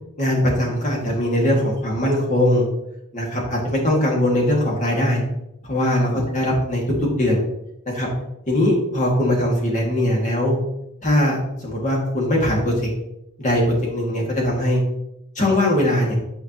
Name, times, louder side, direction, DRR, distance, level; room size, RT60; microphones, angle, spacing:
voice 1, 0.2-2.7 3.1-5.2 5.6-7.4 7.9-8.1 8.5-10.6 11.0-12.9 13.4-14.8 15.4-16.2, left 1 dB, 35° left, -2 dB, 1.9 m, -20 dB
9.0 x 5.1 x 2.9 m, 0.85 s
head